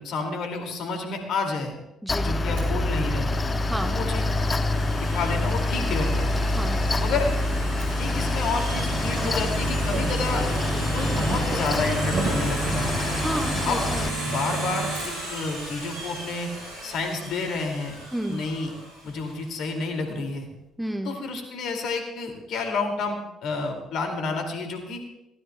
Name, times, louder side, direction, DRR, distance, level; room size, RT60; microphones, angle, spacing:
voice 1, 0.0-1.7 2.2-3.3 3.8-4.3 5.0-6.4 7.0-7.3 8.0-10.5 10.9-12.9 13.6-13.8 14.2-16.5 16.8-18.0 18.3-18.7 19.0-20.5 21.0-25.0, left 3 dB, 55° left, 4 dB, 2.4 m, -30 dB
voice 2, 2.0-2.3 3.7-4.0 6.5-6.8 13.2-14.2 18.1-18.4 20.8-21.2, right 1 dB, 5° right, 5 dB, 1.3 m, -31 dB
Mechanical fan, 2.1-14.1, left 2 dB, 30° left, 0.6 m, -26 dB
Domestic sounds home sounds, 2.6-19.3, right 1 dB, 75° right, 6.7 m, -36 dB
sound 1, 8.6-14.9, right 4 dB, 50° right, 3.9 m, -31 dB
22.0 x 16.5 x 2.3 m, 0.90 s
figure-of-eight pair, 50°, 0 cm